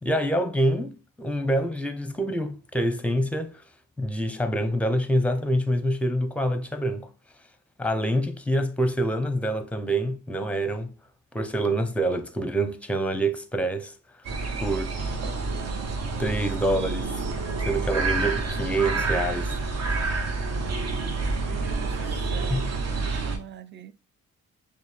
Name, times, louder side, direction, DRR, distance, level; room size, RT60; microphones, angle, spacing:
voice 1, 0.0-3.6 4.0-7.1 7.8-10.9 11.3-13.9 14.6-14.9 16.2-17.1 17.7-19.9 22.3-22.6, right 1 dB, 5° left, 0.6 m, -26 dB
sound 1, 14.2-23.4, right 3 dB, 60° right, 1.0 m, -28 dB
voice 2, 21.2-23.9, right 10 dB, 40° right, 0.4 m, -45 dB
6.3 x 2.2 x 3.3 m
cardioid pair, 90°, 30 cm